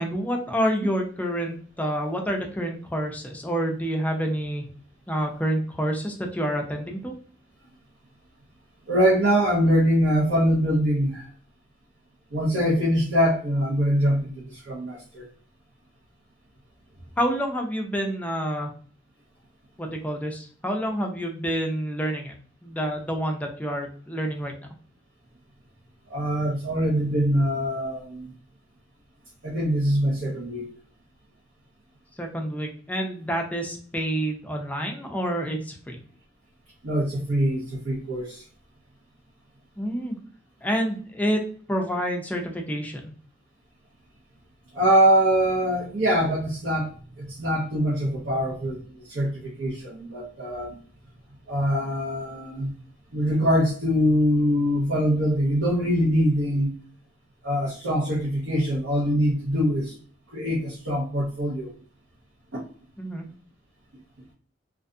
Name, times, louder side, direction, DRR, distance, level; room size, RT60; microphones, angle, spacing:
voice 1, 0.0-4.7 5.1-7.1 17.2-18.7 19.8-22.3 22.6-24.5 32.2-36.0 39.8-40.2 40.6-41.4 41.7-43.0 63.0-63.3, equal, 10° left, 2 dB, 0.4 m, -28 dB
voice 2, 8.9-11.3 12.3-15.3 26.1-28.3 29.4-30.7 36.8-38.4 44.7-46.9 47.2-48.8 49.1-50.8 51.5-52.7 53.1-56.7 57.4-59.9 60.3-61.7 62.5-62.6, equal, 85° right, -6 dB, 0.8 m, -23 dB
2.5 x 2.3 x 2.5 m, 0.43 s
head